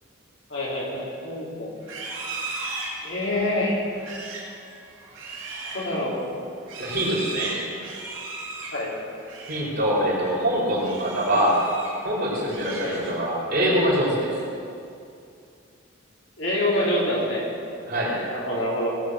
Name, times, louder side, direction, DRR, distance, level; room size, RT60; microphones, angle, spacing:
voice 1, 0.5-1.7 3.0-3.8 5.6-6.3 8.7-8.9 12.8-13.0 16.4-17.4 18.3-18.9, left 1 dB, 60° left, -5 dB, 3.6 m, -26 dB
Livestock farm animals working animals, 1.8-9.7 10.0-10.3 10.8-12.0 12.3-13.4, right 3 dB, 70° right, 3.6 m, -37 dB
voice 2, 6.8-7.6 9.5-11.6 12.0-14.3 17.9-18.1, equal, 50° right, -4 dB, 4.0 m, -24 dB
18.5 x 8.2 x 6.3 m, 2.5 s
head